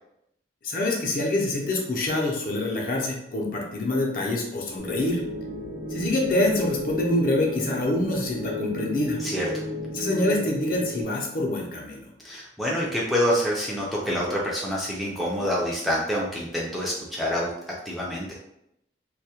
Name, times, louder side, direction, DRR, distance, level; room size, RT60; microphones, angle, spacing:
voice 1, 0.6-5.2 5.9-9.2 9.9-12.1, left 1 dB, 50° left, -1 dB, 0.5 m, -26 dB
sound 1, 4.8-11.0, equal, 80° right, 0.6 m, -34 dB
voice 2, 9.2-9.6 12.2-17.5 17.9-18.3, equal, ahead, -6 dB, 0.3 m, -27 dB
2.2 x 2.1 x 2.8 m, 0.80 s
head